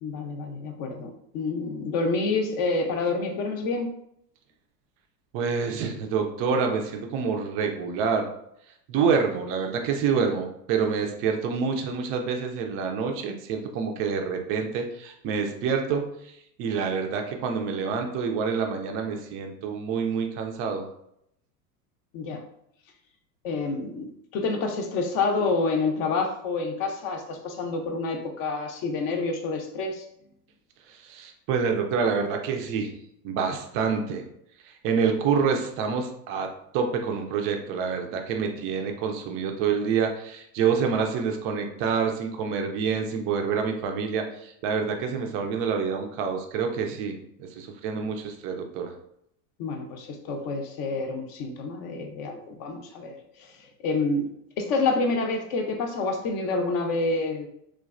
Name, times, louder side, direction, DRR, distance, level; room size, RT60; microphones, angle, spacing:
voice 1, 0.0-3.9 22.1-22.4 23.4-30.1 49.6-53.5 53.8-54.3 54.6-57.5, left 3 dB, 45° left, 4 dB, 0.6 m, -28 dB
voice 2, 5.3-8.3 8.9-16.1 16.6-20.9 31.0-32.9 33.2-34.2 34.8-48.9, right 6 dB, 30° right, 4 dB, 0.4 m, -27 dB
3.1 x 2.2 x 2.4 m, 0.74 s
hypercardioid pair, 95°, 49 cm